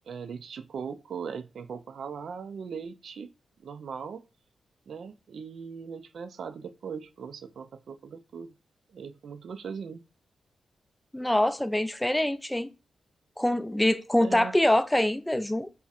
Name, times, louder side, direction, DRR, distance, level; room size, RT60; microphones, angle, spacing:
voice 1, 0.1-3.3 3.6-4.2 4.9-8.5 8.9-10.0 14.2-14.5, right 6 dB, 70° right, 0.3 m, -39 dB
voice 2, 11.1-12.7 13.4-15.7, left 1 dB, 10° left, 0.4 m, -25 dB
4.1 x 2.0 x 2.4 m
cardioid pair, 55°, 0 cm